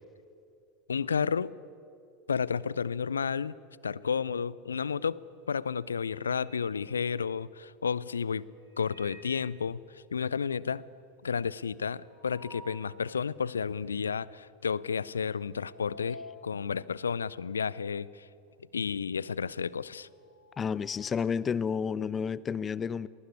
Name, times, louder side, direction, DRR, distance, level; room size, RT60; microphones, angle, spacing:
voice 1, 0.9-1.5 2.3-3.5 3.8-5.2 5.5-8.4 8.8-10.8 11.2-18.3 18.7-20.1, left 6 dB, 75° left, 22 dB, 0.6 m, -32 dB
sound 1, 7.3-7.6 8.6-9.5 9.9-10.0 10.3-10.4 10.7-12.9 13.4-13.5 14.3-14.6 14.8-18.2 18.4-21.4, left 1 dB, 85° right, 4.9 m, -53 dB
voice 2, 20.6-23.1, left 6 dB, 25° left, 20 dB, 0.7 m, -31 dB
25.5 x 19.5 x 9.8 m, 2.5 s
figure-of-eight pair, 85°, 0 cm